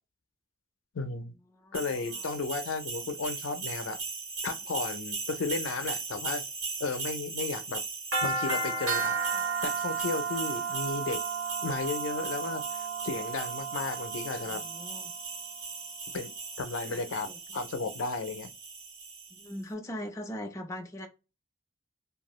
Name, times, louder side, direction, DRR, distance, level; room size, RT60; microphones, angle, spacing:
voice 1, 0.9-1.3 1.7-4.0 4.4-6.4 6.8-7.8 8.2-9.1 9.6-11.2 11.6-14.6 16.1-18.5, left 4 dB, 80° left, 0.5 m, -34 dB
sound 1, 1.7-19.5, right 4 dB, 85° right, 1.2 m, -35 dB
voice 2, 14.4-15.1 16.9-17.4 19.3-21.1, equal, 15° left, 0.4 m, -40 dB
2.6 x 2.3 x 3.0 m
head